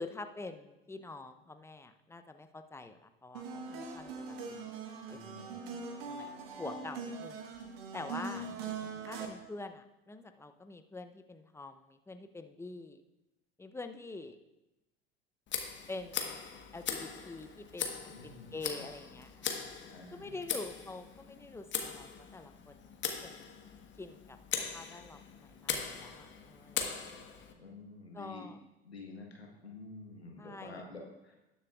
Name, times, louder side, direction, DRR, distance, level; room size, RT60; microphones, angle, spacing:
voice 1, 0.0-4.7 5.1-5.4 6.1-6.3 6.6-7.4 7.9-8.5 9.0-13.0 13.6-14.4 15.9-16.5 16.7-19.5 20.1-23.5 24.0-27.1 28.1-28.6 30.4-30.8, left 3 dB, 10° left, 8 dB, 0.7 m, -46 dB
sound 1, 3.3-9.3, right 4 dB, 65° right, 1.4 m, -42 dB
voice 2, 5.1-5.7 8.3-8.5 8.8-9.0 18.1-18.9 19.9-20.3 27.6-28.5 28.8-31.4, left 3 dB, 90° left, 1 dB, 1.3 m, -49 dB
Tick, 15.5-27.5, left 7 dB, 35° left, 1.3 m, -40 dB
18.5 x 7.1 x 2.4 m, 0.98 s
figure-of-eight pair, 65°, 31 cm